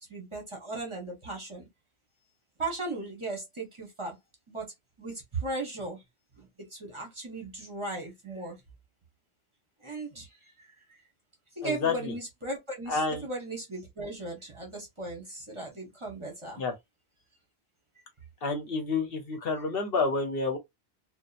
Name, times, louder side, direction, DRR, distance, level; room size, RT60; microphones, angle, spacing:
voice 1, 0.1-1.7 2.6-4.2 4.5-4.7 5.0-6.0 6.4-8.6 9.8-10.7 11.5-16.7, right 2 dB, 30° right, 1.0 m, -37 dB
voice 2, 11.6-12.1 12.9-13.3 16.6-16.7 18.4-20.6, left 4 dB, 65° left, 1.0 m, -29 dB
2.8 x 2.2 x 2.4 m
omnidirectional pair, 1.1 m